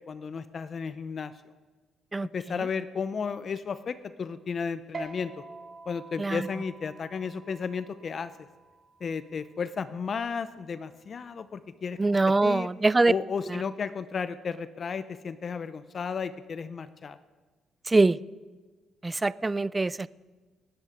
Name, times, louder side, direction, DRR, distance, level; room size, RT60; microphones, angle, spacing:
voice 1, 0.1-1.3 2.2-5.4 5.9-8.3 9.0-12.7 13.1-17.2, left 6 dB, 45° left, 14 dB, 0.6 m, -33 dB
voice 2, 2.1-2.7 6.2-6.5 12.0-13.1 13.5-13.6 17.9-18.2 19.0-20.1, right 3 dB, 20° right, 20 dB, 0.3 m, -24 dB
sound 1, 4.9-11.7, right 4 dB, 45° right, 2.5 m, -47 dB
20.5 x 9.7 x 5.1 m, 1.3 s
cardioid pair, 90°, 0 cm